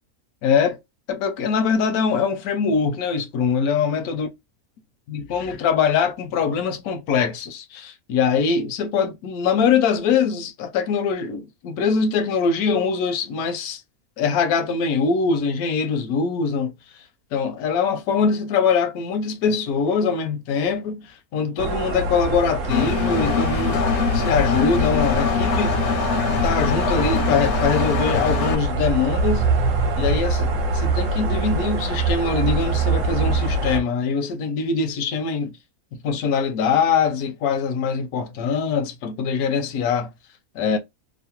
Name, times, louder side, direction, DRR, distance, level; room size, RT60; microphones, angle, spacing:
voice 1, 0.4-0.8 1.1-4.3 5.1-13.8 14.2-16.7 17.3-23.8 24.1-25.9 26.3-29.5 30.0-35.6 36.0-40.1 40.5-40.8, left 6 dB, 80° left, 1.1 m, -23 dB
sound 1, 21.6-33.8, right 2 dB, 65° right, 1.0 m, -24 dB
Engine, 22.7-28.6, left 7 dB, 65° left, 0.7 m, -24 dB
2.9 x 2.0 x 2.8 m
omnidirectional pair, 1.5 m